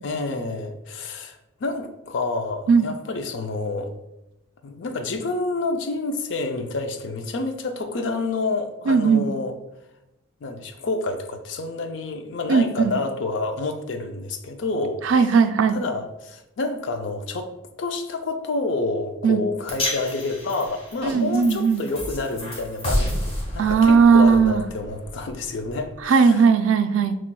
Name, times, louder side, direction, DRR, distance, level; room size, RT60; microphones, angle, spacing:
voice 1, 0.0-3.9 4.6-9.6 10.4-15.4 15.7-17.5 17.8-26.5, left 3 dB, 65° left, 7 dB, 0.4 m, -28 dB
voice 2, 8.9-9.3 12.5-12.9 15.0-15.8 19.2-19.4 21.0-21.8 23.6-24.6 26.0-27.2, right 5 dB, 75° right, 9 dB, 0.3 m, -17 dB
sound 1, 19.7-26.0, left 1 dB, 30° left, 1.0 m, -31 dB
5.9 x 3.0 x 2.2 m, 0.92 s
head